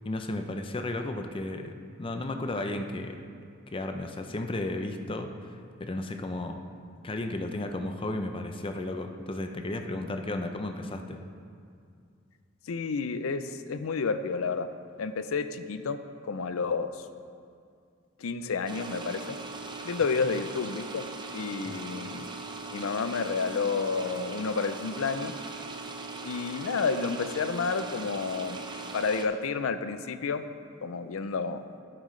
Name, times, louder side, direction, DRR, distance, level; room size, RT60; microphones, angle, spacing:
voice 1, 0.0-3.3 3.7-6.6 7.0-11.2 21.6-21.8, left 2 dB, 25° left, 6 dB, 0.5 m, -34 dB
voice 2, 12.7-14.7 15.0-17.0 18.2-19.4 19.8-21.0 21.3-22.3 22.7-25.3 26.2-28.6 28.9-30.4 30.8-31.6, left 4 dB, 80° left, 11 dB, 0.5 m, -30 dB
sound 1, 18.7-29.3, right 3 dB, 20° right, 0.6 m, -40 dB
11.0 x 9.0 x 3.2 m, 2.3 s
head